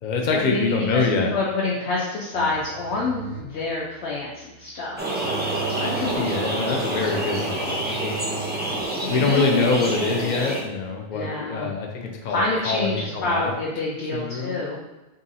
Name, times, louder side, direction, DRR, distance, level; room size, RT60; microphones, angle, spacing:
voice 1, 0.0-1.3 2.3-2.5 5.8-8.3 9.1-13.5 14.1-14.6, left 4 dB, 50° left, 1 dB, 0.6 m, -25 dB
voice 2, 0.9-5.0 9.0-10.3 11.1-11.7 12.2-14.8, left 3 dB, 75° left, -4 dB, 0.9 m, -27 dB
sound 1, 2.5-9.4, right 10 dB, 85° right, 0.9 m, -40 dB
sound 2, 5.0-10.6, right 1 dB, 10° right, 0.5 m, -27 dB
3.7 x 2.6 x 4.0 m, 1.1 s
omnidirectional pair, 1.1 m